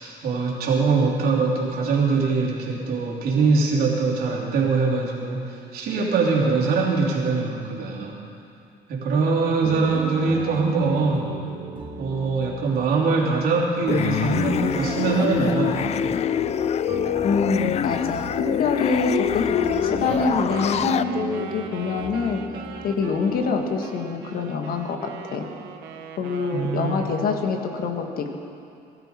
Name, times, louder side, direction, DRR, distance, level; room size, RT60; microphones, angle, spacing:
voice 1, 0.0-8.2 8.9-11.3 12.0-16.0 26.5-27.1, right 4 dB, 65° right, -3 dB, 3.1 m, -23 dB
sound 1, 9.6-23.7, right 3 dB, 30° right, 2.0 m, -36 dB
sound 2, 13.9-21.0, left 10 dB, 40° left, 0.4 m, -25 dB
voice 2, 17.2-22.5 22.8-25.5 26.2-28.4, left 4 dB, 60° left, 4 dB, 1.6 m, -25 dB
Wind instrument woodwind instrument, 20.0-27.2, right 6 dB, 90° right, 1.1 m, -41 dB
20.0 x 12.5 x 4.4 m, 2.5 s
cardioid pair, 110°, 17 cm